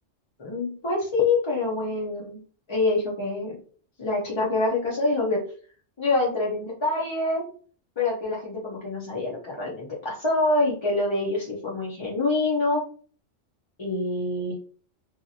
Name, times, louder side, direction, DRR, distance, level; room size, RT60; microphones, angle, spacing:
voice 1, 0.4-2.4 2.7-3.6 4.0-5.4 6.0-7.4 8.0-12.8 13.8-14.6, left 2 dB, 35° left, -4 dB, 0.4 m, -26 dB
2.9 x 2.4 x 2.6 m, 0.42 s
omnidirectional pair, 1.3 m